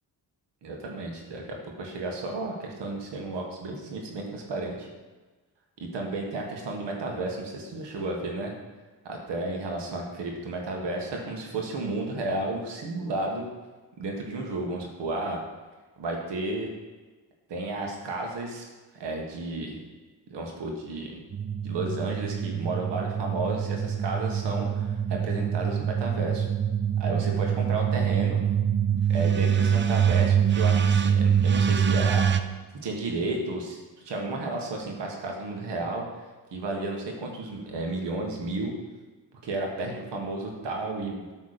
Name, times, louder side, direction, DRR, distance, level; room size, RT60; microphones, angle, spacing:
voice 1, 0.6-4.9 5.8-8.5 9.0-13.4 14.0-15.4 16.0-16.7 17.5-18.6 19.0-19.8 20.3-21.1 21.6-26.5 27.0-28.4 29.1-32.2 32.8-33.8 34.0-36.0 36.5-38.7 39.4-41.2, right 2 dB, 80° right, 0 dB, 1.6 m, -32 dB
sound 1, 21.3-32.4, right 8 dB, 30° right, 0.5 m, -25 dB
8.7 x 3.5 x 6.6 m, 1.3 s
cardioid pair, 75°, 41 cm